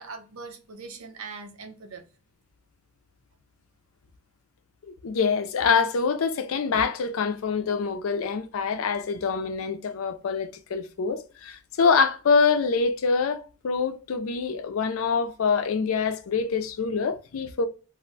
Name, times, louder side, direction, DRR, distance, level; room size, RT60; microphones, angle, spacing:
voice 1, 0.0-2.0, right 4 dB, 90° right, 0.6 m, -41 dB
voice 2, 5.0-17.7, left 5 dB, 80° left, 0.4 m, -25 dB
2.5 x 2.1 x 3.8 m
head